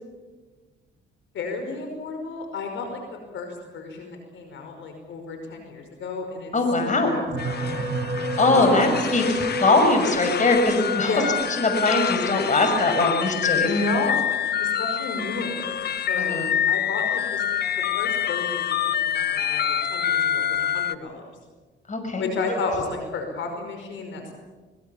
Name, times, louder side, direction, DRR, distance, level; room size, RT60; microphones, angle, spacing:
voice 1, 1.3-3.0 3.3-6.5 6.8-7.8 8.5-8.9 11.1-11.3 13.6-15.7 16.1-16.4 16.7-17.4 18.0-21.2 22.2-24.3, left 3 dB, 75° left, 4 dB, 5.3 m, -32 dB
voice 2, 6.5-7.2 8.4-11.1 11.6-13.7 16.1-16.5 21.9-22.2, left 2 dB, 40° left, 5 dB, 6.1 m, -21 dB
sound 1, 7.2-15.6 16.4-16.6 16.9-17.0, right 1 dB, 80° right, 3.2 m, -33 dB
sound 2, 7.4-20.9, left 9 dB, 55° left, 1.0 m, -27 dB
24.5 x 21.5 x 7.1 m, 1.3 s
cardioid pair, 90°, 20 cm